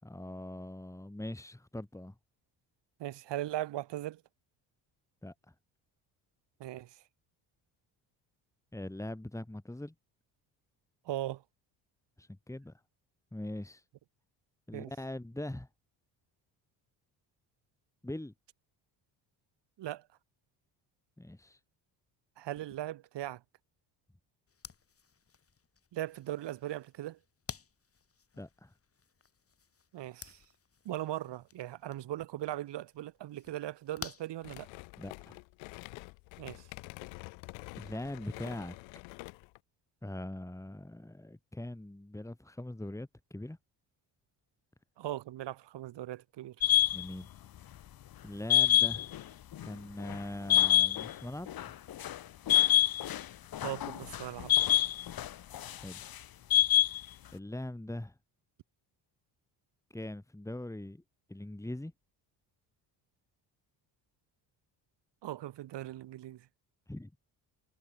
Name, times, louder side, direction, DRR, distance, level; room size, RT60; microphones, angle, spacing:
voice 1, 0.0-2.1 5.2-5.3 8.7-9.9 12.2-12.7 13.3-13.8 14.7-15.7 18.0-18.3 21.2-21.6 28.4-28.7 35.0-35.4 37.8-38.8 40.0-43.6 46.9-47.3 48.2-49.1 49.6-51.7 55.8-56.0 57.3-58.2 59.9-61.0 61.3-61.9 66.9-67.2, left 1 dB, 5° left, 4.1 m, -41 dB
voice 2, 3.0-4.2 6.6-6.9 11.1-11.4 14.7-14.9 19.8-20.0 22.4-23.4 25.9-27.2 29.9-30.4 30.9-34.7 36.4-36.6 45.0-46.6 53.6-54.5 65.2-66.5, right 14 dB, 70° right, 3.4 m, -39 dB
sound 1, 24.5-35.1, left 6 dB, 30° left, 2.9 m, -52 dB
sound 2, 34.4-39.6, left 26 dB, 90° left, 2.3 m, -47 dB
sound 3, 46.6-47.0 48.5-49.2 49.5-49.7 50.1-50.2 50.5-51.1 51.5-52.2 52.5-53.3 53.5-55.3 55.5-56.0 56.5-57.0, left 11 dB, 50° left, 1.4 m, -26 dB
supercardioid pair, 85°, 44 cm